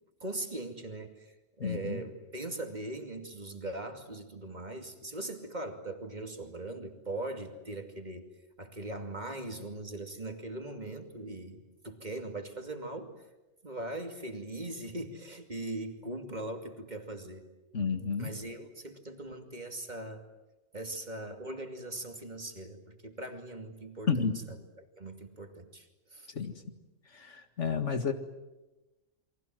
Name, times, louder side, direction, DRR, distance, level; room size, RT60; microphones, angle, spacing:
voice 1, 0.2-8.3 8.6-13.2 13.6-17.4 18.2-20.2 20.7-24.6 25.0-26.3, right 2 dB, 35° right, 5 dB, 2.6 m, -40 dB
voice 2, 1.6-2.0 17.7-18.3 24.1-24.4 26.3-26.5 27.1-28.1, left 6 dB, 65° left, 7 dB, 2.2 m, -31 dB
29.5 x 23.5 x 7.6 m, 1.0 s
omnidirectional pair, 1.3 m